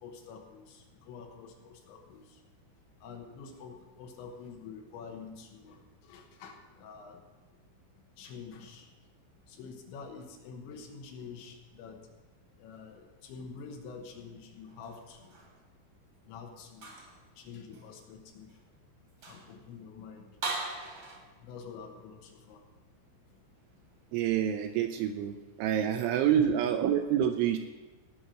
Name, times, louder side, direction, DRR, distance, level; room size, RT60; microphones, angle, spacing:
voice 1, 0.0-2.4 3.0-7.7 8.2-8.9 9.5-12.1 12.6-15.5 16.2-17.0 17.4-18.7 19.2-20.8 21.4-22.7 23.3-23.4 23.9-24.0 26.4-26.5, left 5 dB, 75° left, 3 dB, 3.2 m, -47 dB
sound 1, 14.7-15.6 16.7-17.2 17.7-17.9 18.5-18.6 19.1-19.6 20.4-21.2, right 3 dB, 50° right, 1.9 m, -39 dB
voice 2, 24.1-27.6, right 9 dB, 85° right, 7 dB, 2.8 m, -27 dB
17.5 x 6.0 x 6.4 m, 1.3 s
omnidirectional pair, 5.9 m